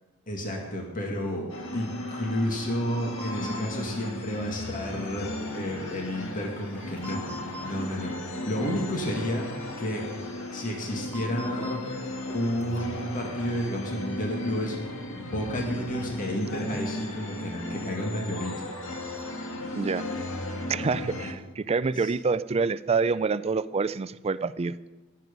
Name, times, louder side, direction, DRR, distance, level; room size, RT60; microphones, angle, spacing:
voice 1, 0.3-1.5 1.7-7.2 7.6-9.5 9.8-10.1 10.5-11.8 12.3-14.8 15.2-18.7 22.0-22.1, equal, 40° left, 0 dB, 2.1 m, -31 dB
sound 1, 1.5-21.3, left 1 dB, 65° left, 1.8 m, -36 dB
sound 2, 3.2-3.6 6.7-7.7 9.3-9.4 10.8-11.8 12.3-12.4 12.6-12.8, equal, 5° left, 2.0 m, -40 dB
voice 2, 19.7-20.1 20.7-24.8, right 4 dB, 30° right, 15 dB, 0.4 m, -27 dB
18.5 x 7.7 x 5.3 m, 1.1 s
head